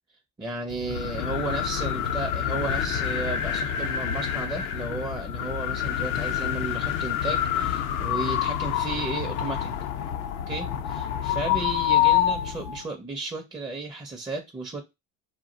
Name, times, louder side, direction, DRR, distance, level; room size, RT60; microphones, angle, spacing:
voice 1, 0.4-9.7 10.5-14.8, right 3 dB, 10° right, 0.4 m, -34 dB
sound 1, 0.7-12.8, left 10 dB, 80° left, 0.6 m, -27 dB
2.4 x 2.1 x 3.7 m
hypercardioid pair, 85°, 40 cm